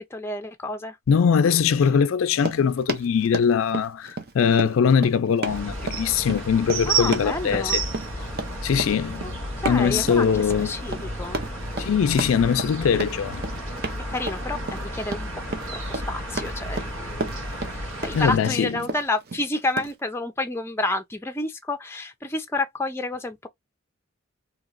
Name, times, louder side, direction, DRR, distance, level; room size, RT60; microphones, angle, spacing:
voice 1, 0.0-1.0 6.9-7.8 9.2-9.3 9.6-10.3 10.6-11.4 11.8-11.9 14.1-15.3 15.9-17.4 17.7-23.5, left 2 dB, 10° left, 0.5 m, -30 dB
voice 2, 1.1-7.8 8.6-9.3 9.7-10.7 11.8-13.4 18.1-18.8, left 7 dB, 75° left, 0.4 m, -21 dB
Run, 2.3-19.9, right 2 dB, 50° right, 0.7 m, -33 dB
sound 1, 5.5-18.4, right 2 dB, 75° right, 1.5 m, -32 dB
3.0 x 2.9 x 2.5 m
head